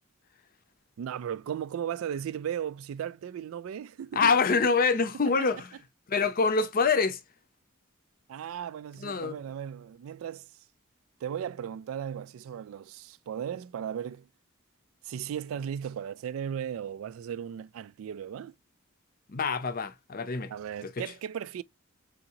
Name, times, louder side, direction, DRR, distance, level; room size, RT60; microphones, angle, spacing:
voice 1, 1.0-4.3 5.4-5.5 8.3-10.5 11.2-14.3 15.0-18.5 20.5-21.6, right 9 dB, 75° right, 0.3 m, -36 dB
voice 2, 4.2-5.7 6.1-7.2 9.0-9.4 19.3-20.5, left 4 dB, 45° left, 0.6 m, -25 dB
3.8 x 3.6 x 2.8 m
head